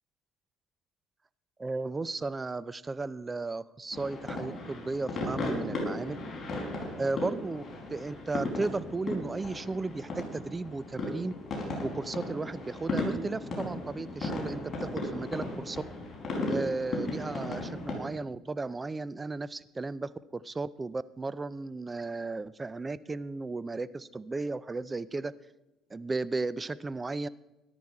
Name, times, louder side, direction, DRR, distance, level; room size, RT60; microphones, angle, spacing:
voice 1, 1.6-6.2 7.0-7.6 7.9-11.3 11.8-15.8 16.5-25.3 25.9-27.3, right 3 dB, 20° right, 18 dB, 0.4 m, -35 dB
sound 1, 3.9-17.9, left 2 dB, 35° left, 4.9 m, -36 dB
13.5 x 11.5 x 4.8 m, 0.98 s
cardioid pair, 100°, 0 cm